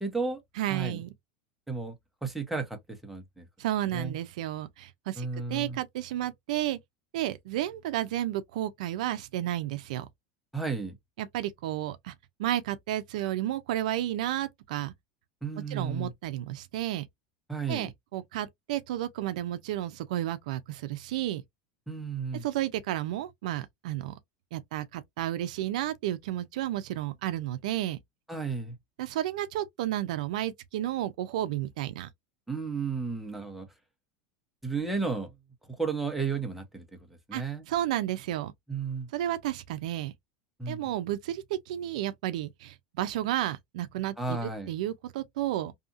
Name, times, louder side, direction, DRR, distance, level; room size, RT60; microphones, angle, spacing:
voice 1, 0.0-0.4 0.7-1.0 1.7-1.9 2.2-3.4 3.9-4.2 5.2-5.8 10.5-10.9 15.4-16.1 17.5-17.9 21.9-22.4 28.3-28.7 32.5-33.7 34.6-35.3 35.7-36.8 37.3-37.6 38.7-39.1 40.6-41.0 44.2-44.7, right 4 dB, 5° right, 0.7 m, -33 dB
voice 2, 0.6-1.1 3.6-6.8 7.1-10.1 11.2-12.1 12.4-14.9 15.7-17.1 17.7-21.4 22.4-24.1 24.5-28.0 29.0-32.1 37.3-38.5 39.1-40.1 40.7-45.7, right 13 dB, 75° right, 0.4 m, -32 dB
2.7 x 2.5 x 2.4 m
supercardioid pair, 145°, 4 cm